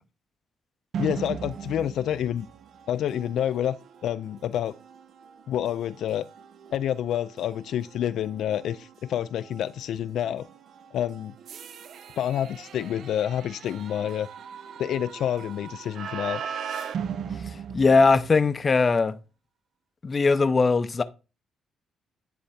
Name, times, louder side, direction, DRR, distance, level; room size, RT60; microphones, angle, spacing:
sound 1, 0.9-18.7, right 7 dB, 65° right, 0.6 m, -39 dB
voice 1, 1.0-2.5 2.9-3.8 4.0-4.8 5.5-6.3 6.7-10.5 10.9-11.3 12.2-14.3 14.8-16.4, left 10 dB, 75° left, 0.3 m, -28 dB
voice 2, 17.7-19.2 20.0-21.0, left 4 dB, 35° left, 0.6 m, -20 dB
9.9 x 3.3 x 4.2 m
cardioid pair, 90°, 0 cm